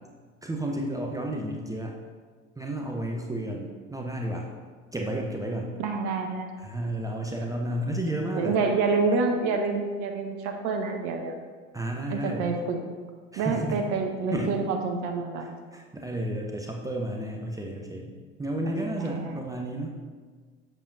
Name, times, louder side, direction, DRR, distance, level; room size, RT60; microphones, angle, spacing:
voice 1, 0.4-2.0 2.6-4.5 4.9-5.7 6.6-8.6 11.7-12.6 13.3-13.8 14.3-14.5 15.7-18.1 18.4-20.0, right 1 dB, 10° right, 0 dB, 0.7 m, -32 dB
voice 2, 5.8-6.5 8.3-11.4 12.1-12.8 13.4-15.5 18.6-19.4, right 4 dB, 50° right, 4 dB, 0.9 m, -27 dB
7.4 x 6.8 x 2.7 m, 1.5 s
figure-of-eight pair, 65°, 38 cm